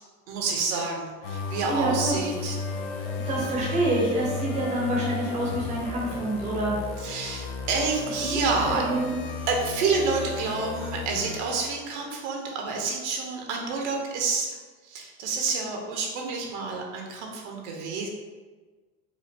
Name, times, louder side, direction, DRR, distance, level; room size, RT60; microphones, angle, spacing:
voice 1, 0.3-2.6 7.0-8.8 9.5-14.5 14.9-18.1, right 4 dB, 80° right, 1 dB, 1.0 m, -28 dB
sound 1, 1.2-12.1, left 4 dB, 70° left, 0.7 m, -34 dB
voice 2, 1.7-2.1 3.3-6.7 8.2-8.4 8.6-9.2, right 1 dB, 20° right, -3 dB, 0.7 m, -27 dB
4.8 x 2.4 x 2.9 m, 1.3 s
cardioid pair, 170°, 34 cm